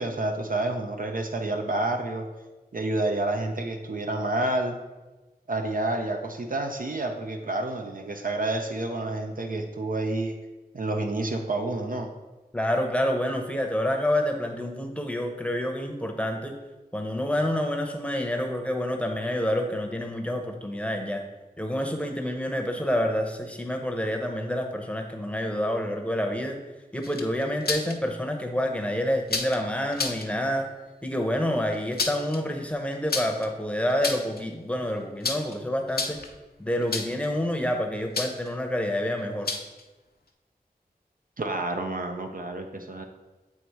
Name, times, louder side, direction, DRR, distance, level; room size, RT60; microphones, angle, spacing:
voice 1, 0.0-2.3 2.7-4.8 5.5-10.3 10.7-12.1 41.4-43.1, right 2 dB, 60° right, 4 dB, 0.6 m, -29 dB
voice 2, 12.5-16.5 16.9-21.2 21.6-26.6 26.9-30.7 31.0-36.2 36.6-39.5, equal, 10° left, 3 dB, 0.8 m, -28 dB
sound 1, 27.0-27.9 29.3-29.6 29.9-30.3 31.7-32.4 33.1-33.5 33.9-34.4 35.2-35.6 35.9-36.3 36.9-37.3 38.1-38.5 39.5-39.8, left 4 dB, 70° left, 0.6 m, -30 dB
7.9 x 3.0 x 4.5 m, 1.1 s
wide cardioid pair, 50°, 16 cm